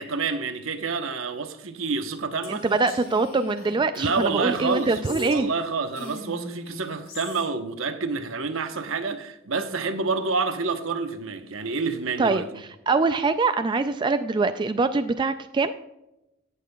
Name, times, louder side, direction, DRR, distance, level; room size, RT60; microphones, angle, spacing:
voice 1, 0.0-2.7 4.0-12.5, right 4 dB, 70° right, 1.0 m, -28 dB
Female speech woman speaking, 2.4-5.6 5.9-7.5, left 1 dB, 80° left, 3.0 m, -41 dB
voice 2, 2.5-5.5 12.2-12.4 12.9-15.7, right 3 dB, 20° right, 0.3 m, -23 dB
17.5 x 7.1 x 2.3 m
head